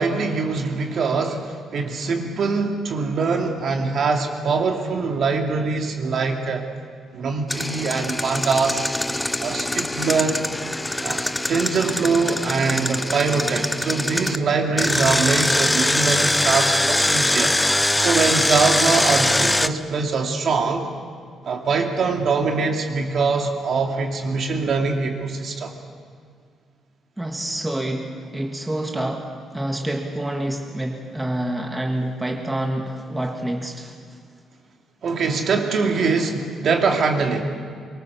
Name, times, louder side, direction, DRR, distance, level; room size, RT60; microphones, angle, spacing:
voice 1, 0.0-6.6 7.1-8.8 9.4-10.5 11.0-17.5 18.0-20.9 21.5-25.7 35.0-37.4, right 4 dB, 50° right, 3 dB, 2.6 m, -23 dB
Engine, 7.5-14.4 14.8-19.7, left 1 dB, 10° left, 0.6 m, -22 dB
voice 2, 27.2-34.0, right 1 dB, 10° right, 2 dB, 1.6 m, -27 dB
24.0 x 23.0 x 7.1 m, 2.1 s
cardioid pair, 150°, 0 cm